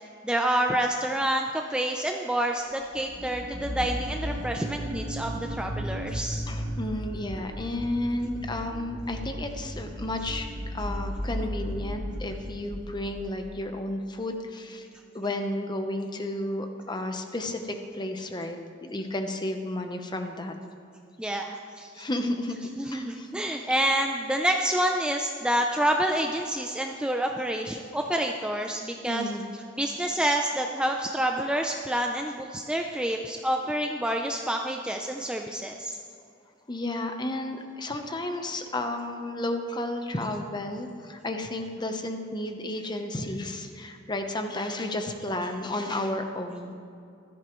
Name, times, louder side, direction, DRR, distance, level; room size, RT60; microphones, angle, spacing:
voice 1, 0.2-6.4 21.2-22.1 22.8-29.2 29.8-36.0, right 1 dB, 5° right, 2 dB, 0.5 m, -28 dB
sound 1, 2.8-13.5, equal, 75° right, 1.9 m, -35 dB
voice 2, 6.5-10.5 10.7-14.9 15.1-20.6 21.9-23.3 23.6-23.7 29.1-29.5 36.7-46.7, left 1 dB, 25° left, 5 dB, 0.9 m, -32 dB
15.5 x 13.5 x 3.1 m, 2.5 s
head